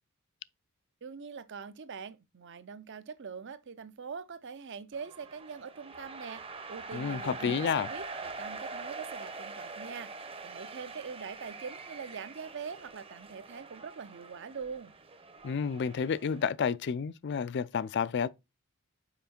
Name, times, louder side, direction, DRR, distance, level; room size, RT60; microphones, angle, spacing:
voice 1, 1.0-14.9, right 5 dB, 55° right, 0.6 m, -43 dB
sound 1, 4.9-16.5, right 3 dB, 25° right, 0.8 m, -44 dB
voice 2, 6.9-7.9 15.4-18.3, left 6 dB, 55° left, 0.4 m, -30 dB
5.7 x 5.1 x 4.3 m
head